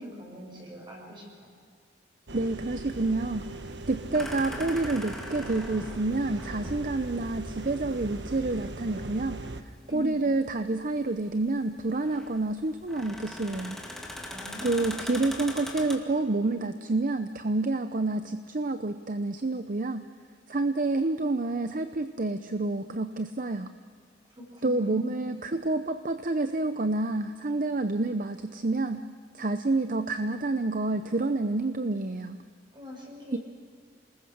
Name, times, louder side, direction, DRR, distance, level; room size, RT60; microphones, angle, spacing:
voice 1, 0.0-1.5 9.9-10.3 14.3-15.0 24.3-25.2 32.7-33.4, left 2 dB, 25° right, -1 dB, 7.1 m, -42 dB
voice 2, 2.3-3.5 3.9-13.8 14.6-20.0 20.5-23.7 24.6-29.0 29.3-32.4 33.3-33.4, right 2 dB, 45° right, 9 dB, 0.8 m, -28 dB
sound 1, 2.3-9.6, right 2 dB, 70° right, 1.4 m, -40 dB
sound 2, 2.9-16.0, left 1 dB, ahead, 2.2 m, -42 dB
28.0 x 20.5 x 6.5 m, 2.1 s
head